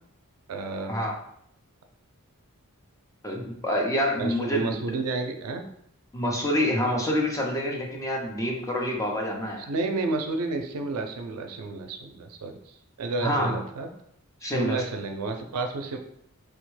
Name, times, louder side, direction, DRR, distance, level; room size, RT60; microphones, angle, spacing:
voice 1, 0.5-1.0 4.2-5.6 9.6-13.9 14.4-16.0, right 3 dB, 80° right, 5 dB, 0.4 m, -31 dB
voice 2, 3.2-4.8 6.1-9.7 13.2-13.5 14.4-14.8, equal, 15° left, -1 dB, 0.5 m, -27 dB
3.3 x 2.1 x 3.1 m, 0.73 s
head